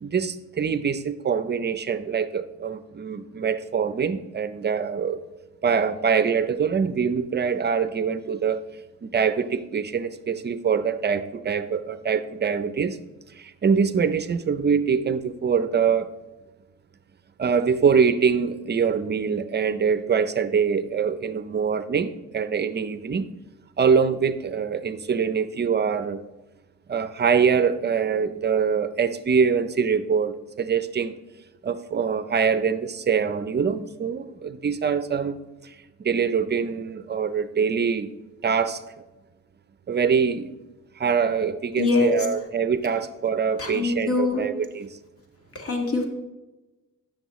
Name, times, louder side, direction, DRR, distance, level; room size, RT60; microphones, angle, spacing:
voice 1, 0.0-5.2 5.6-8.6 9.0-13.0 13.3-16.1 17.4-23.3 23.8-26.2 26.9-31.1 31.6-35.4 35.6-38.1 38.4-38.8 39.9-40.5 41.0-45.0, right 6 dB, 35° right, 12 dB, 0.6 m, -24 dB
voice 2, 41.8-42.1 43.6-44.4 45.6-46.1, left 3 dB, 50° left, 2 dB, 2.0 m, -23 dB
11.5 x 6.4 x 3.1 m, 1.1 s
cardioid pair, 90°, 30 cm